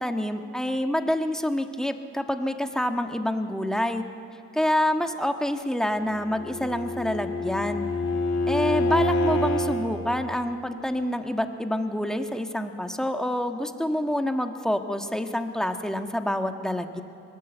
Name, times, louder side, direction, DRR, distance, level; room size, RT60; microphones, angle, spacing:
voice 1, 0.0-4.0 4.5-7.9 8.5-17.0, left 1 dB, ahead, 6 dB, 1.4 m, -27 dB
Bowed string instrument, 6.2-9.9, left 2 dB, 65° left, 3.2 m, -26 dB
24.0 x 19.0 x 8.0 m, 2.9 s
cardioid pair, 90°, 30 cm